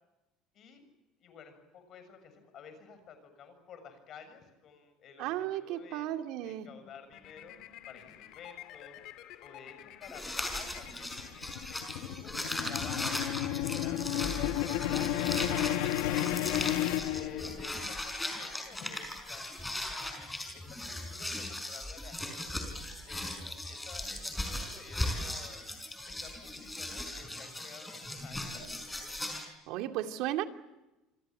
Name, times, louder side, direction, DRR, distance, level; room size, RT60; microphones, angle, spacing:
voice 1, 1.2-6.1 6.4-7.6 7.9-9.0 9.4-12.4 12.7-16.5 17.1-20.3 20.5-22.7 23.1-25.6 26.1-29.0, left 6 dB, 35° left, 9 dB, 6.9 m, -52 dB
voice 2, 5.2-6.7 29.4-30.4, right 13 dB, 60° right, 6 dB, 2.4 m, -35 dB
sound 1, 7.1-12.3, left 12 dB, 50° left, 2.9 m, -51 dB
sound 2, 10.0-29.4, left 1 dB, 5° left, 5.1 m, -38 dB
sound 3, 10.6-17.8, left 13 dB, 80° left, 1.6 m, -32 dB
28.0 x 26.0 x 7.5 m, 1.0 s
cardioid pair, 170°, 0 cm